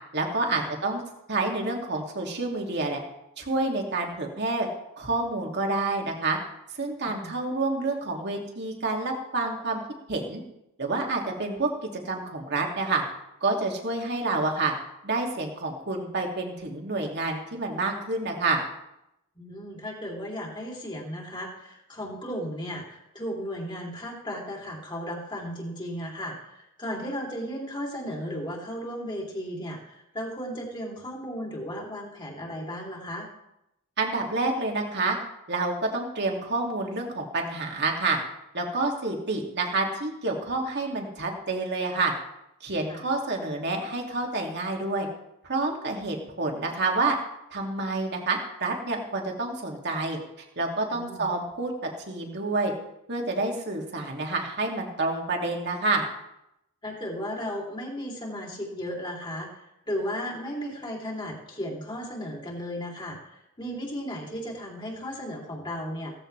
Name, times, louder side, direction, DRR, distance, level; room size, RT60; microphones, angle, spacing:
voice 1, 0.1-1.0 1.3-3.0 3.4-4.7 5.0-6.4 6.7-9.8 10.1-10.4 10.8-13.0 13.4-14.7 15.0-18.6 34.0-35.2 35.5-38.2 38.5-42.1 42.6-45.1 45.4-47.2 47.5-50.2 50.6-52.7 53.1-56.0, right 3 dB, 50° right, 0 dB, 2.6 m, -28 dB
voice 2, 7.0-7.4 19.3-33.3 42.9-43.0 50.9-51.3 56.8-66.1, equal, 20° left, -1 dB, 3.2 m, -35 dB
16.5 x 15.0 x 3.4 m, 0.84 s
head